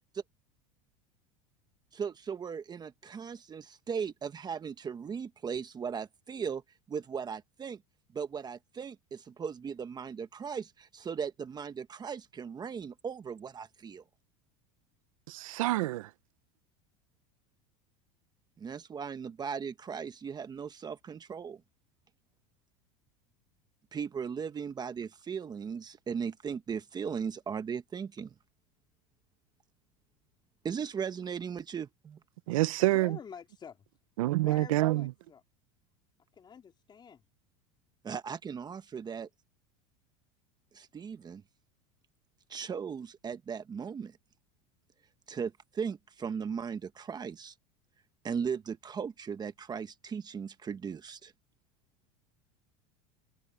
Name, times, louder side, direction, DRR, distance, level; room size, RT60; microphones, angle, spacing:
voice 1, 1.9-6.6 6.9-7.8 8.1-14.0 18.6-21.6 23.9-28.3 30.6-32.2 38.0-39.3 40.7-41.4 42.5-44.2 45.3-47.5 48.2-51.3, right 6 dB, 25° right, 1.2 m, -37 dB
voice 2, 15.3-16.1 32.5-33.2 34.2-35.1, right 18 dB, 85° right, 0.8 m, -27 dB
voice 3, 32.8-33.8 34.4-35.4 36.4-37.2, left 7 dB, 25° left, 3.3 m, -48 dB
supercardioid pair, 115°, 17 cm